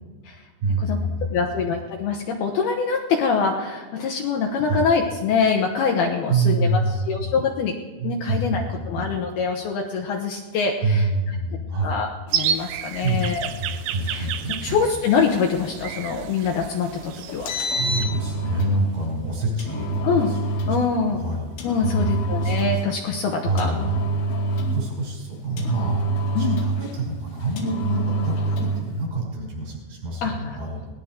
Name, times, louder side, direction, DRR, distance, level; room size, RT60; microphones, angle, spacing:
voice 1, 0.6-1.7 4.6-4.9 6.3-7.3 8.0-8.6 9.0-9.1 10.8-12.0 13.0-13.2 13.6-14.8 17.1-21.5 21.8-22.6 23.4-23.9 24.7-26.1 26.4-30.8, right 2 dB, 55° right, -4 dB, 8.6 m, -26 dB
voice 2, 1.3-7.7 8.0-11.1 11.8-13.5 14.1-14.3 14.6-17.5 20.0-20.3 20.7-21.2 21.6-23.7 26.3-26.6 30.2-30.6, left 5 dB, 70° left, 1 dB, 2.7 m, -24 dB
sound 1, 12.3-18.1, right 9 dB, 80° right, 3.0 m, -31 dB
Engine, 17.3-18.8 19.6-20.8 21.6-22.9 23.6-24.9 25.6-26.9 27.6-28.8, right 2 dB, 85° left, 4.6 m, -26 dB
20.0 x 19.5 x 3.7 m, 1.4 s
omnidirectional pair, 5.2 m